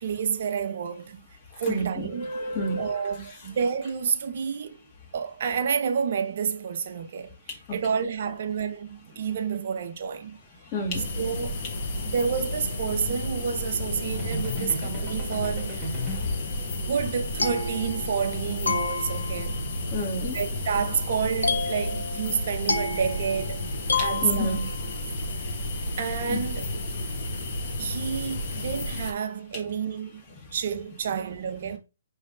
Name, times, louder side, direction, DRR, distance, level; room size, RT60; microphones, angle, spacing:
voice 1, 0.0-2.3 2.8-4.8 5.1-7.4 7.7-10.4 11.2-11.6 12.1-16.0 16.7-19.5 20.3-23.6 24.0-24.6 26.0-26.7 27.8-30.2 30.5-31.8, right 6 dB, 55° right, 0.5 m, -29 dB
voice 2, 1.7-3.2 10.7-11.0 16.2-16.3 19.9-20.3 24.2-24.7 26.3-26.4, left 1 dB, 30° left, 1.4 m, -30 dB
sound 1, 10.9-29.1, left 1 dB, 50° left, 0.9 m, -32 dB
sound 2, 14.1-16.5, left 1 dB, 20° right, 1.1 m, -35 dB
sound 3, 17.1-18.4 18.7-19.5 21.4-24.9, left 4 dB, 80° left, 0.6 m, -30 dB
5.1 x 3.0 x 2.4 m
figure-of-eight pair, 135°, 0 cm